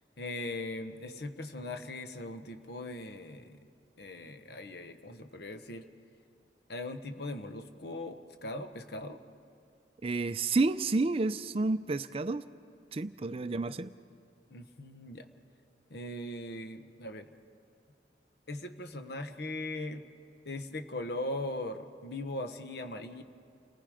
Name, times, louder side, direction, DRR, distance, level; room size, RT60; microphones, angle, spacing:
voice 1, 0.2-3.7 4.0-5.8 6.7-9.2 14.5-15.3 15.9-17.3 18.5-20.0 20.4-23.2, left 1 dB, 65° left, 8 dB, 1.1 m, -39 dB
voice 2, 10.0-12.5 12.9-13.9, right 3 dB, 30° right, 12 dB, 0.4 m, -30 dB
29.0 x 19.5 x 5.0 m, 2.4 s
head